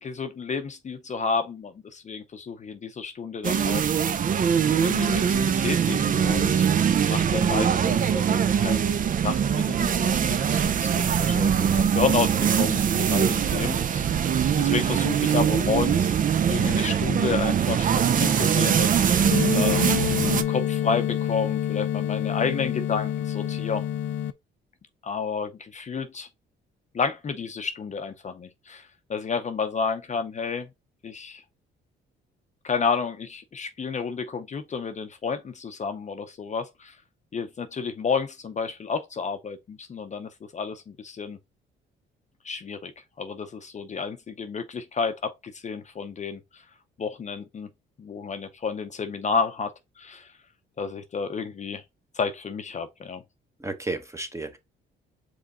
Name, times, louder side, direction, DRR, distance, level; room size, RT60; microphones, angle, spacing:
voice 1, 0.0-3.8 4.8-6.5 7.1-8.8 9.2-14.2 14.6-19.8 20.3-23.9 25.0-26.3 26.9-30.7 31.0-31.4 32.6-37.0 37.3-41.4 42.4-42.9 43.2-46.6 47.0-47.7 48.0-50.3 50.8-51.8 52.1-53.2, left 5 dB, 35° left, 0.6 m, -31 dB
sound 1, 3.4-20.4, right 8 dB, 45° right, 0.5 m, -22 dB
sound 2, 19.3-24.3, left 11 dB, 85° left, 0.4 m, -27 dB
voice 2, 53.6-54.6, right 2 dB, 15° right, 1.0 m, -33 dB
5.1 x 3.7 x 2.5 m
cardioid pair, 90°, 20 cm